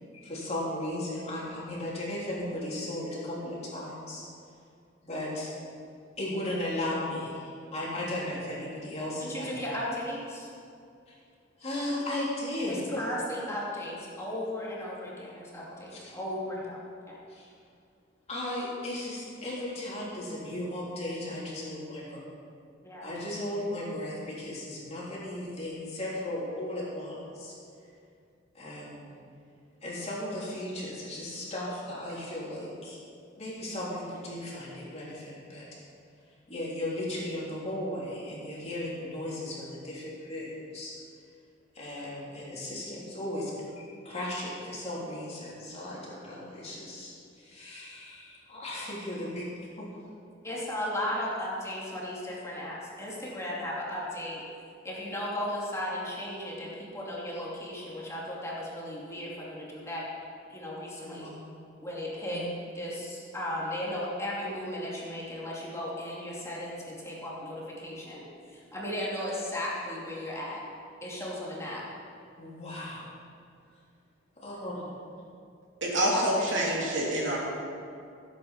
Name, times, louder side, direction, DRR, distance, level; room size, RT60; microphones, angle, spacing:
voice 1, 0.1-4.2 5.0-5.5 6.2-9.5 11.1-11.2 11.6-13.0 15.7-16.2 17.3-17.5 18.3-22.2 23.0-27.5 28.5-29.1 29.8-33.0 33.4-35.7 36.5-40.9 41.7-49.5 49.8-49.9 61.0-61.3 72.4-73.1 74.4-74.9, left 1 dB, 35° left, -6 dB, 3.4 m, -36 dB
voice 2, 9.2-10.5 12.7-16.8 17.1-17.2 22.8-23.1 50.4-54.4 54.8-60.1 60.5-61.3 61.8-62.5 62.7-70.6 71.0-71.8 76.1-76.5, left 1 dB, 15° left, -5 dB, 2.6 m, -35 dB
voice 3, 75.8-77.4, right 1 dB, 70° right, -4 dB, 3.0 m, -27 dB
15.0 x 8.3 x 5.8 m, 2.4 s
head